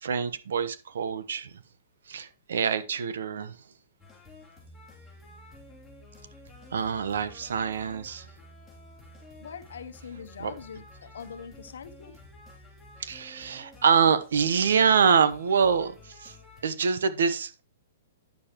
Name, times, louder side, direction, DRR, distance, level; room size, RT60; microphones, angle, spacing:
voice 1, 0.0-1.5 2.1-3.6 6.7-8.3 10.4-10.5 13.0-16.4 16.6-17.6, right 6 dB, 80° right, 1.0 m, -25 dB
sound 1, 4.0-16.6, left 1 dB, ahead, 2.9 m, -51 dB
voice 2, 9.4-12.1, left 7 dB, 85° left, 0.9 m, -43 dB
9.4 x 6.7 x 3.0 m
hypercardioid pair, 160°, 0 cm